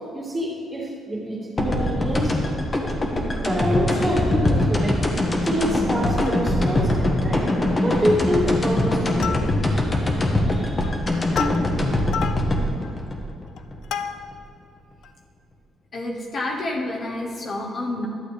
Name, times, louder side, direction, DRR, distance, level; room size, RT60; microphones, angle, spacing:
voice 1, 0.1-2.4 3.4-5.0 5.4-7.4 7.8-9.4 10.5-10.9, equal, 20° right, -4 dB, 2.5 m, -26 dB
sound 1, 1.6-14.4, left 1 dB, 30° left, 1.2 m, -22 dB
Plucked string instrument, 3.7-4.5 4.9-5.0 5.3-5.5 5.9-6.6 6.9-7.0 7.4-7.7 8.1-8.5 8.8-9.9 10.4-14.5 15.0-15.1, left 8 dB, 80° left, 0.4 m, -34 dB
voice 2, 15.9-18.1, left 2 dB, 50° left, -1 dB, 1.2 m, -29 dB
12.0 x 7.7 x 3.4 m, 2.2 s
cardioid pair, 90°, 0 cm